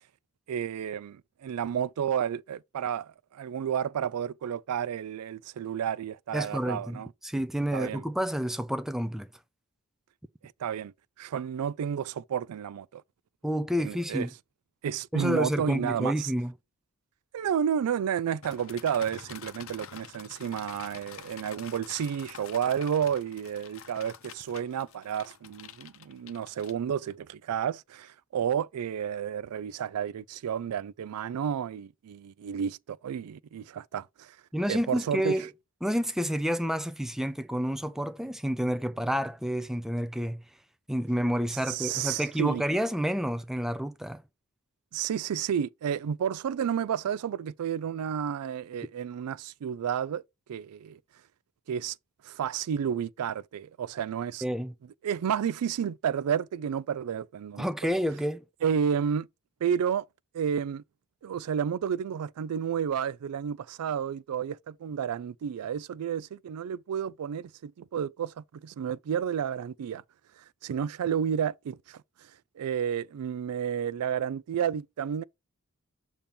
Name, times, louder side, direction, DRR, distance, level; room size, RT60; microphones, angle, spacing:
voice 1, 0.5-7.1 7.7-8.0 10.4-13.0 13.8-14.3 14.8-16.3 17.3-34.4 34.7-35.4 41.7-42.6 44.9-50.2 50.5-51.0 51.7-52.0 52.2-54.4 55.0-57.7 58.6-59.3 59.6-60.1 60.3-60.8 61.2-70.0 70.6-72.0 72.6-75.2, right 8 dB, 90° right, 0.3 m, -31 dB
voice 2, 6.3-9.3 13.4-14.3 15.1-16.5 34.5-35.5 35.8-40.4 40.9-44.2 54.4-54.7 57.6-58.4, equal, ahead, 0.4 m, -29 dB
sound 1, 18.4-27.1, left 7 dB, 65° left, 0.7 m, -47 dB
6.9 x 2.9 x 5.2 m
head